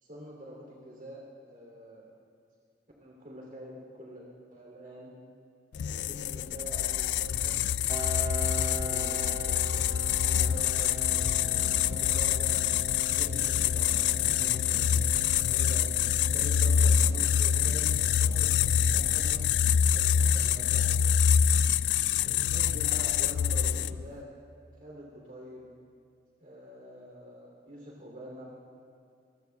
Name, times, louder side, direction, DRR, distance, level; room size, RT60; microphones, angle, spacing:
voice 1, 0.0-2.1 3.0-4.2 4.5-5.2 6.0-7.6 8.6-9.9 10.3-12.5 13.1-15.1 15.5-16.0 16.3-19.4 19.9-21.2 22.2-24.3 24.8-25.7 26.4-28.4, equal, 50° right, -3 dB, 3.0 m, -46 dB
sound 1, 5.7-24.1, left 8 dB, 80° left, 0.3 m, -26 dB
Piano, 7.9-23.2, right 1 dB, 25° right, 1.1 m, -43 dB
27.5 x 20.5 x 2.3 m, 2.4 s
head